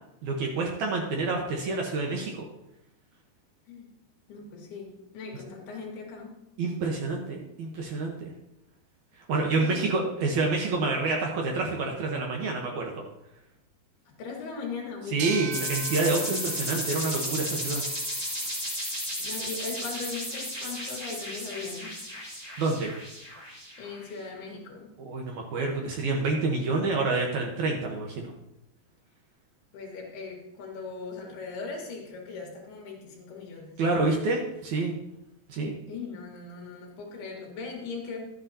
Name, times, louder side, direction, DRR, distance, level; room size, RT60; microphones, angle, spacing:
voice 1, 0.2-2.5 6.6-8.3 9.3-13.1 15.1-17.8 22.6-22.9 25.0-28.3 33.8-34.9 35.5-35.7, right 3 dB, 70° right, 0 dB, 1.8 m, -28 dB
voice 2, 4.3-6.4 9.5-9.9 14.2-15.6 19.2-22.0 23.8-25.0 29.7-34.2 35.9-38.2, left 4 dB, 75° left, -1 dB, 3.7 m, -39 dB
sound 1, 15.2-18.6, right 8 dB, 90° right, 2.9 m, -41 dB
sound 2, 15.5-24.0, equal, 45° right, 0.5 m, -34 dB
12.0 x 9.4 x 2.8 m, 0.86 s
omnidirectional pair, 4.7 m